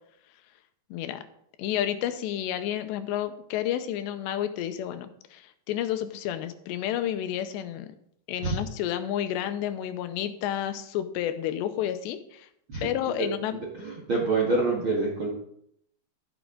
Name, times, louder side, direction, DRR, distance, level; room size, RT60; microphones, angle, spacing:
voice 1, 0.9-1.2 1.6-7.9 8.3-12.5 12.8-13.5, left 11 dB, 85° left, 10 dB, 2.8 m, -30 dB
voice 2, 13.8-15.3, right 3 dB, 60° right, -1 dB, 1.3 m, -26 dB
12.0 x 11.0 x 3.8 m, 0.72 s
omnidirectional pair, 5.1 m